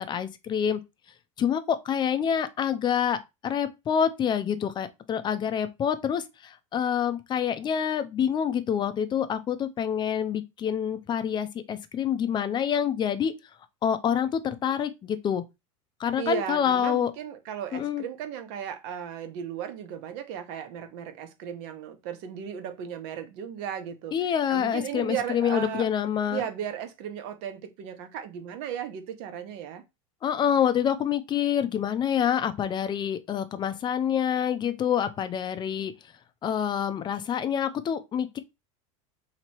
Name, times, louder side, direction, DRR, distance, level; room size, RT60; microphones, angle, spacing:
voice 1, 0.1-0.8 1.4-3.2 3.4-13.3 13.8-15.4 16.0-17.1 17.7-18.0 24.1-26.4 30.2-35.9 36.4-38.4, left 8 dB, 25° left, 0.5 m, -27 dB
voice 2, 16.2-24.1 24.5-25.9 26.3-29.8, right 9 dB, 60° right, 0.9 m, -35 dB
3.0 x 2.9 x 4.4 m
supercardioid pair, 120°, 17 cm